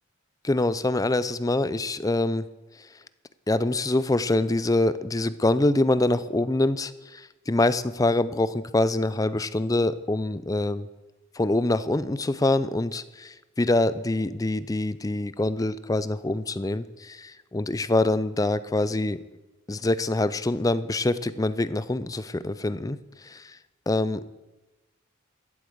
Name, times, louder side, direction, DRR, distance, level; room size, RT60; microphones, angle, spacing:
voice 1, 0.4-2.5 2.8-2.9 3.5-10.9 11.3-19.2 19.7-23.6 23.9-24.2, left 2 dB, 15° left, 15 dB, 0.4 m, -25 dB
13.5 x 8.4 x 7.9 m, 1.1 s
head